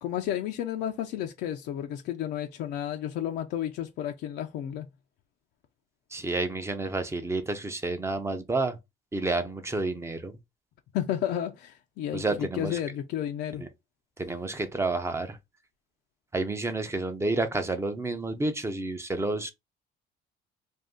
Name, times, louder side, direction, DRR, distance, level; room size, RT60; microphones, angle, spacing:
voice 1, 0.0-4.9 10.9-13.6, left 11 dB, 80° left, 0.5 m, -32 dB
voice 2, 6.1-8.8 9.1-10.3 12.1-12.8 13.6-13.7 14.2-15.4 16.3-19.5, right 2 dB, 15° right, 0.6 m, -30 dB
2.6 x 2.4 x 3.5 m
cardioid pair, 110°, 17 cm